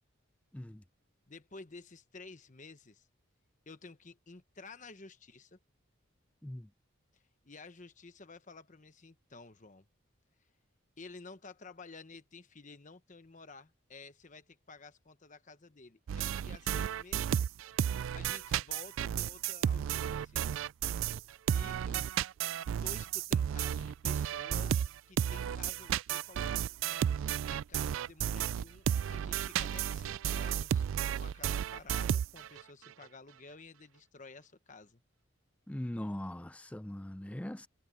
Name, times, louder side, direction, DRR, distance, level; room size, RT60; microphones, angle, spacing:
voice 1, 0.5-0.8 6.4-6.7 21.9-22.0 35.7-37.7, left 1 dB, 5° left, 0.4 m, -40 dB
voice 2, 1.3-3.1 3.7-5.6 7.1-9.9 11.0-17.5 18.1-20.4 21.5-22.1 22.8-26.5 27.5-30.9 31.2-35.0, left 3 dB, 40° left, 1.1 m, -52 dB
sound 1, 16.1-21.2 21.5-32.6, right 9 dB, 70° right, 0.3 m, -33 dB
head